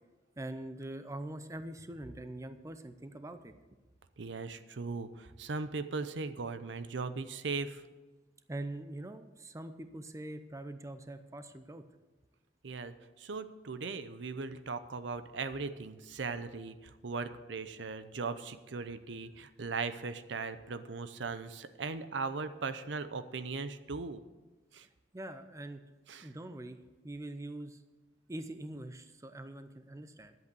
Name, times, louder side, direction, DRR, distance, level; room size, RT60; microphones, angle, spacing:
voice 1, 0.4-3.5 8.5-11.8 25.1-25.8 26.2-26.8 27.0-27.8 28.3-30.3, right 1 dB, 15° right, 10 dB, 0.5 m, -43 dB
voice 2, 4.2-7.8 12.6-24.2 24.7-24.9 26.1-26.3, right 4 dB, 70° right, 12 dB, 0.7 m, -38 dB
11.0 x 8.1 x 6.9 m, 1.2 s
head